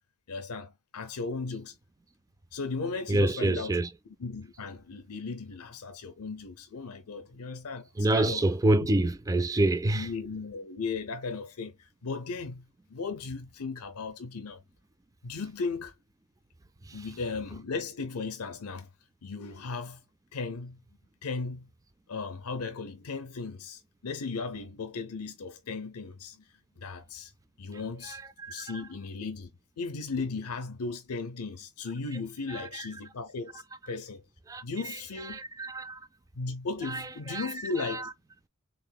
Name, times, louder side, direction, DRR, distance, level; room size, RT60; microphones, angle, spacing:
voice 1, 0.3-1.7 2.5-3.8 4.2-8.4 8.8-8.9 9.9-12.6 12.9-14.6 15.2-15.9 16.9-18.9 19.2-20.0 20.3-20.8 21.2-21.7 22.1-26.5 26.8-27.3 27.6-28.2 28.5-29.5 29.8-34.2 34.6-35.4 36.4-38.1, left 4 dB, 85° left, 0.6 m, -36 dB
voice 2, 3.1-3.9 8.0-10.1 16.9-17.0 28.1-28.6 32.5-32.9 34.5-34.6 35.3-36.0 36.8-37.5 37.8-38.1, right 2 dB, 15° right, 0.3 m, -27 dB
3.8 x 3.5 x 2.3 m
head